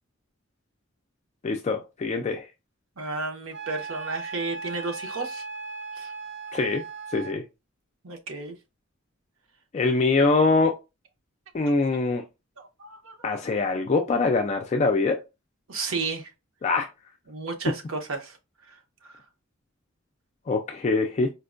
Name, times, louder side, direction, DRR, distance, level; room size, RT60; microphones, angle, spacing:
voice 1, 1.4-2.5 6.5-6.8 7.1-7.4 9.7-10.8 11.5-12.2 13.2-15.2 16.6-16.9 20.5-21.3, left 3 dB, 35° left, 0.3 m, -23 dB
voice 2, 3.0-5.4 5.9-6.1 8.0-8.5 11.6-11.7 12.6-13.1 15.7-16.3 17.3-18.4 18.7-18.8 19.0-19.1, right 3 dB, 85° right, 0.8 m, -33 dB
Wind instrument woodwind instrument, 3.5-7.4, right 4 dB, 60° right, 0.5 m, -37 dB
4.3 x 2.1 x 2.5 m
head